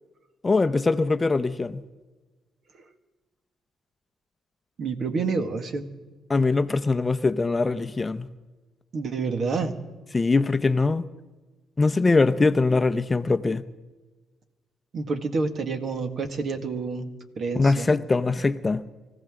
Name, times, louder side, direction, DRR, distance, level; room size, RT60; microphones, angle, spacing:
voice 1, 0.4-1.8 6.3-8.3 10.1-11.0 11.8-13.6 17.5-18.8, left 3 dB, 25° left, 0.7 m, -22 dB
voice 2, 4.8-5.8 8.9-9.7 14.9-17.1 17.4-17.9, right 4 dB, 55° right, 1.8 m, -28 dB
25.5 x 15.0 x 3.7 m
cardioid pair, 90°, 0 cm